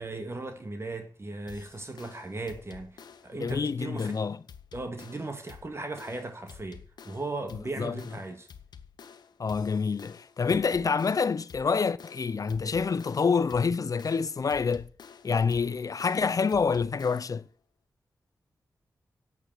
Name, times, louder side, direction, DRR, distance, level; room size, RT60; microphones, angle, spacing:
voice 1, 0.0-4.2 4.7-8.5, right 2 dB, 40° right, 2.1 m, -37 dB
sound 1, 1.5-17.4, left 7 dB, 90° left, 0.9 m, -51 dB
voice 2, 3.4-4.4 7.8-8.0 9.4-14.9 15.2-17.4, left 5 dB, 60° left, 0.6 m, -27 dB
8.8 x 8.4 x 6.5 m
cardioid pair, 60°, 7 cm